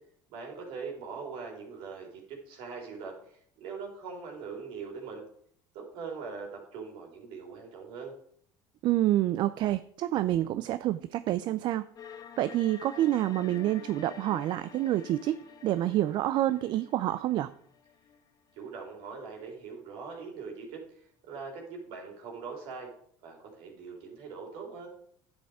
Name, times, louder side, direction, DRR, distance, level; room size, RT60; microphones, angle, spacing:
voice 1, 0.3-5.2 5.7-8.2 18.5-22.9 23.2-24.9, right 5 dB, 70° right, 1 dB, 3.7 m, -42 dB
voice 2, 8.8-11.9 12.4-15.4 15.6-17.5, right 14 dB, 55° right, 13 dB, 0.5 m, -28 dB
sound 1, 12.0-18.9, left 7 dB, 40° left, 1.2 m, -49 dB
10.5 x 8.0 x 4.9 m, 0.65 s
supercardioid pair, 110°, 9 cm